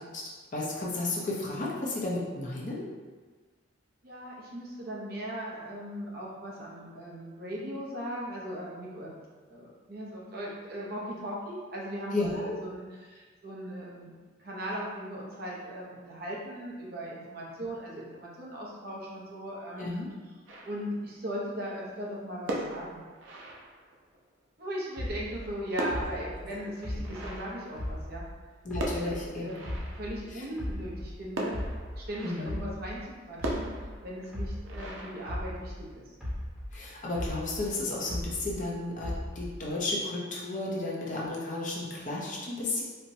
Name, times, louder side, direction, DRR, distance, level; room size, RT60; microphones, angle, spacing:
voice 1, 0.5-2.9 12.1-12.5 19.8-20.1 28.6-29.6 30.3-30.4 32.2-32.7 36.7-42.8, left 2 dB, 40° left, -4 dB, 0.6 m, -33 dB
voice 2, 4.0-9.2 9.5-14.1 14.4-19.9 20.6-23.0 24.6-28.2 29.0-31.6 32.0-33.0 33.3-33.7 34.0-36.0, equal, 50° right, -4 dB, 0.7 m, -38 dB
sound 1, 20.5-21.2 22.3-24.2 25.2-28.4 28.8-30.4 31.4-32.8 33.4-35.9, right 1 dB, 85° right, 0.5 m, -39 dB
sound 2, 25.0-28.4 28.7-31.2 31.5-35.9 36.2-38.7 39.0-39.7, left 1 dB, ahead, 0.9 m, -37 dB
4.3 x 2.1 x 2.6 m, 1.4 s
head